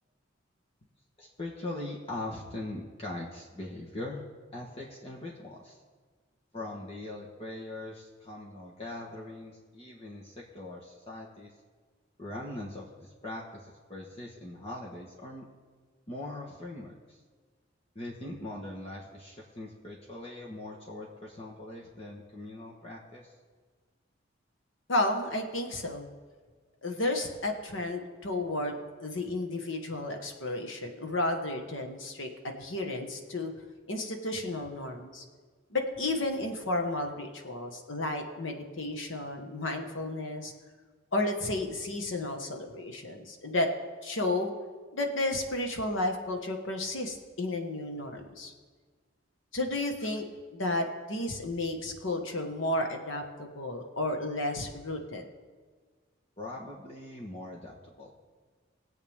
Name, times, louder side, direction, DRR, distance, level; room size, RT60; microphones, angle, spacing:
voice 1, 1.2-4.2 4.5-5.8 6.5-11.5 12.2-15.4 16.1-17.2 17.9-23.3 56.4-58.1, left 1 dB, 30° left, -3 dB, 1.5 m, -41 dB
voice 2, 24.9-26.1 26.8-33.5 33.9-35.2 35.7-40.5 41.1-43.7 44.0-44.5 44.9-48.5 49.5-50.3 50.5-55.2, left 2 dB, 85° left, 4 dB, 1.5 m, -32 dB
22.0 x 8.1 x 3.6 m, 1.5 s
head